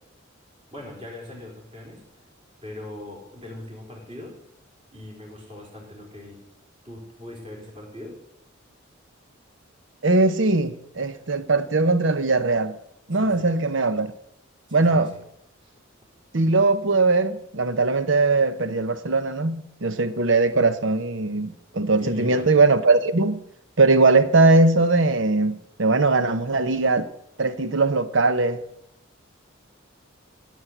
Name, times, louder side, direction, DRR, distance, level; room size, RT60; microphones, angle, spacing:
voice 1, 0.7-2.2 2.6-4.3 4.9-6.4 6.8-8.2 13.1-13.5 14.7-15.1 15.6-15.7 22.0-22.5, left 1 dB, 25° right, 4.5 m, -40 dB
voice 2, 10.0-12.8 13.1-14.1 14.7-15.1 16.3-23.4 23.8-27.1 27.4-28.6, right 3 dB, 65° right, 0.9 m, -20 dB
16.0 x 7.6 x 8.1 m
head